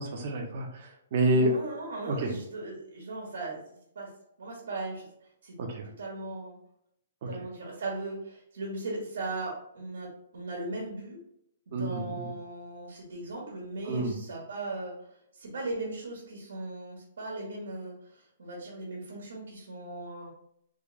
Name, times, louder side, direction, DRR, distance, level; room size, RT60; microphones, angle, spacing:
voice 1, 0.0-1.5 2.1-2.3 5.6-5.9 7.2-7.3 11.7-12.3 13.8-14.1, right 1 dB, 45° right, 3 dB, 0.8 m, -29 dB
voice 2, 1.3-3.6 3.9-4.1 4.4-5.1 5.4-5.5 6.0-6.6 7.3-11.2 11.7-14.9 15.3-20.3, right 2 dB, 80° right, -3 dB, 1.3 m, -38 dB
3.7 x 2.5 x 3.2 m, 0.73 s
hypercardioid pair, 160°, 0 cm